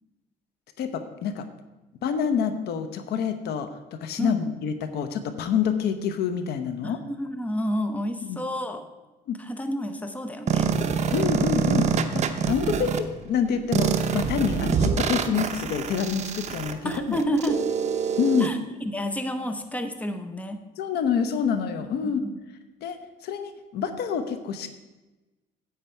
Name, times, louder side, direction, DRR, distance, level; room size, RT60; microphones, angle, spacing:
voice 1, 0.8-1.5 2.0-7.0 8.2-8.4 9.3-9.4 11.1-17.2 18.2-18.5 20.8-22.2 22.8-23.0 23.2-24.8, left 7 dB, 75° left, 9 dB, 0.9 m, -27 dB
voice 2, 4.2-4.5 6.8-8.9 9.4-10.7 16.8-17.6 18.4-20.6 22.2-22.3, equal, 10° left, 8 dB, 0.8 m, -30 dB
sound 1, 10.5-13.0 13.7-18.5, right 6 dB, 45° right, 0.8 m, -25 dB
9.2 x 8.1 x 4.6 m, 1.1 s
cardioid pair, 110°, 17 cm